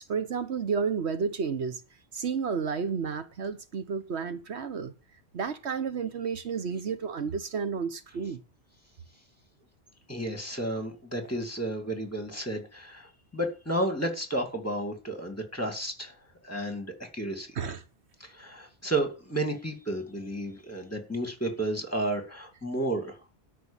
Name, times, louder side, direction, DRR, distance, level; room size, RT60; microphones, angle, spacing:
voice 1, 0.0-1.8 2.1-4.9 5.3-8.4 17.5-17.8, right 5 dB, 85° right, 1.4 m, -31 dB
voice 2, 10.1-16.1 16.4-17.5 18.2-23.2, right 1 dB, 15° left, 2.4 m, -32 dB
12.5 x 5.1 x 8.9 m
omnidirectional pair, 1.1 m